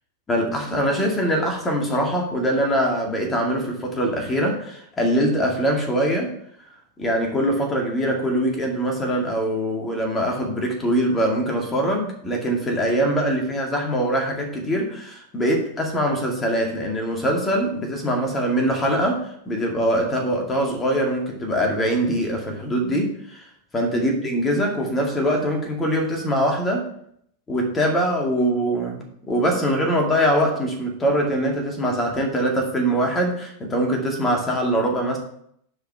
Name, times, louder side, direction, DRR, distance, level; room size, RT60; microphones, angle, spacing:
voice 1, 0.3-6.3 7.0-23.4 23.7-26.9 27.5-35.2, equal, 15° left, 1 dB, 2.3 m, -23 dB
10.0 x 5.2 x 3.6 m, 0.68 s
figure-of-eight pair, 90°, 0 cm